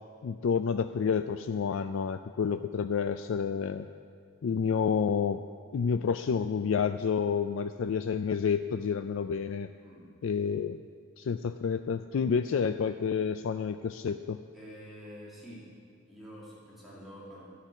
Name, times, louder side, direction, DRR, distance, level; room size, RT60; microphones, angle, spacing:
voice 1, 0.2-3.9 4.4-5.4 5.7-9.7 10.2-10.8 11.2-14.4, left 6 dB, 70° left, 9 dB, 0.3 m, -29 dB
voice 2, 14.5-15.8 16.1-17.5, equal, ahead, -9 dB, 2.6 m, -47 dB
13.0 x 6.6 x 8.8 m, 2.3 s
head